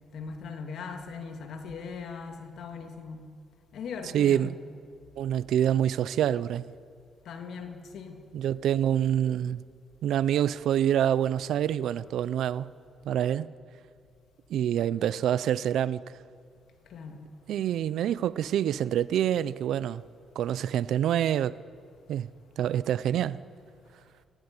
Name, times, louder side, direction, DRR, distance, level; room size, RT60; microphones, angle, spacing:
voice 1, 0.1-3.2 3.7-4.5 7.2-8.2 16.9-17.3, left 5 dB, 70° left, 2.8 m, -39 dB
voice 2, 4.1-4.5 5.2-6.7 8.3-9.6 10.0-12.7 13.0-13.5 14.5-16.2 17.5-20.0 20.4-21.6 22.1-22.3 22.6-23.4, right 10 dB, 75° right, 0.7 m, -26 dB
27.5 x 17.5 x 9.9 m
cardioid pair, 90°, 0 cm